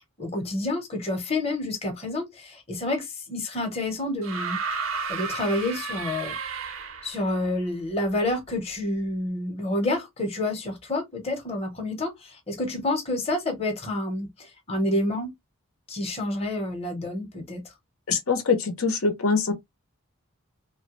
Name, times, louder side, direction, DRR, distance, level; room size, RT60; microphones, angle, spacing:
voice 1, 0.2-4.6 5.1-6.3 7.0-15.3 15.9-17.6, left 1 dB, 30° left, 0.9 m, -29 dB
sound 1, 4.2-7.3 8.5-8.6, right 4 dB, 70° right, 0.7 m, -32 dB
voice 2, 18.1-19.5, left 4 dB, 80° left, 0.8 m, -23 dB
3.1 x 2.2 x 3.0 m
head